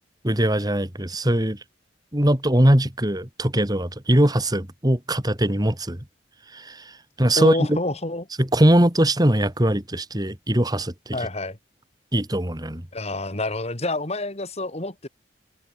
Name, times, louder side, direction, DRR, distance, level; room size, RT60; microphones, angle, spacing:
voice 1, 0.2-1.6 2.1-6.0 6.5-6.9 7.2-7.8 8.4-11.2 12.1-12.8, right 1 dB, 20° right, 3.1 m, -21 dB
voice 2, 7.4-8.3 11.1-11.6 12.9-15.1, left 2 dB, 35° left, 3.1 m, -28 dB
open air
head